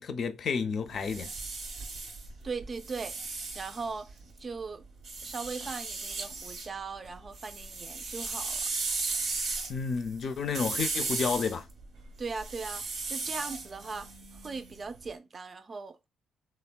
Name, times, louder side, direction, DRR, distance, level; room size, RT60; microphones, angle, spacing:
voice 1, 0.0-1.3 9.7-11.7, left 5 dB, 55° left, 0.4 m, -31 dB
sound 1, 0.8-4.4 5.0-6.7 7.0-15.0, right 3 dB, 80° right, 0.9 m, -36 dB
voice 2, 2.4-4.1 4.4-4.8 5.2-8.6 12.2-14.1 14.4-16.1, right 4 dB, 35° right, 0.4 m, -39 dB
3.3 x 2.1 x 2.2 m
cardioid pair, 90°, 0 cm